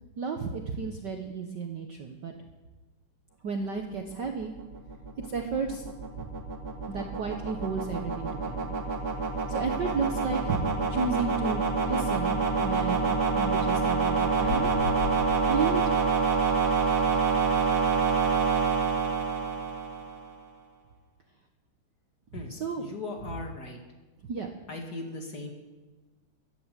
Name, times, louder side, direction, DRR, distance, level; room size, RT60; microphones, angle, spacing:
voice 1, 0.2-2.3 3.4-4.5 5.3-5.8 6.9-8.7 9.5-14.7 15.5-15.8 22.5-22.8 24.3-24.5, right 5 dB, 90° right, 4 dB, 0.9 m, -32 dB
sound 1, 4.1-20.3, right 4 dB, 40° right, 1.6 m, -27 dB
sound 2, 14.4-18.2 18.4-18.5, left 11 dB, 75° left, 1.7 m, -38 dB
voice 2, 22.3-23.8 24.7-25.5, left 3 dB, 35° left, 2 dB, 2.0 m, -38 dB
15.5 x 11.5 x 7.5 m, 1.2 s
omnidirectional pair, 3.5 m